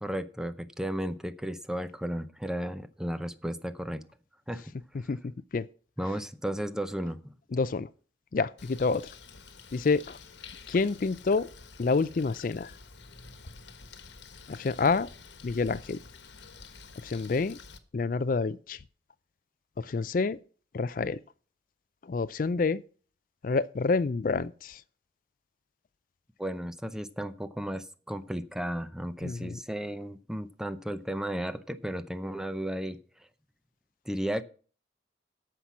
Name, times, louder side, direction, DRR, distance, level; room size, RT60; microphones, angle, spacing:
voice 1, 0.0-4.0 4.5-4.6 6.0-7.3 26.4-33.0 34.1-34.4, equal, 5° right, 0.6 m, -34 dB
voice 2, 7.5-7.9 8.3-9.1 9.7-10.2 10.7-11.5 11.8-12.7 14.5-15.1 15.4-16.0 17.0-17.6 17.9-18.8 19.8-20.4 20.7-21.2 22.1-22.8 23.4-24.8 29.2-29.6, left 4 dB, 50° left, 0.4 m, -28 dB
Bird, 8.6-17.8, left 4 dB, 85° left, 1.3 m, -49 dB
14.0 x 5.8 x 6.0 m
head